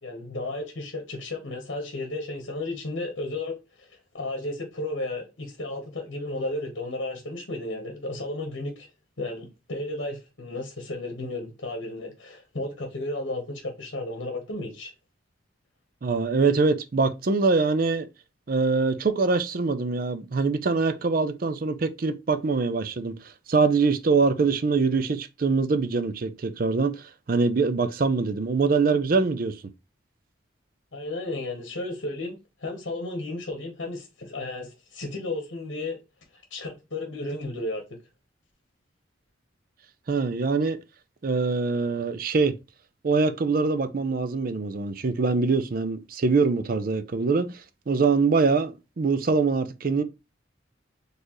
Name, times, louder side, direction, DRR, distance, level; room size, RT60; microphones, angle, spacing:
voice 1, 0.0-8.9 9.2-14.9 30.9-36.0 36.3-37.8, left 2 dB, 65° left, 1.0 m, -33 dB
voice 2, 16.0-18.1 18.5-23.1 23.5-29.6 40.1-40.8 41.2-42.5 43.0-50.0, right 4 dB, 45° right, 0.4 m, -24 dB
4.4 x 3.3 x 3.0 m
head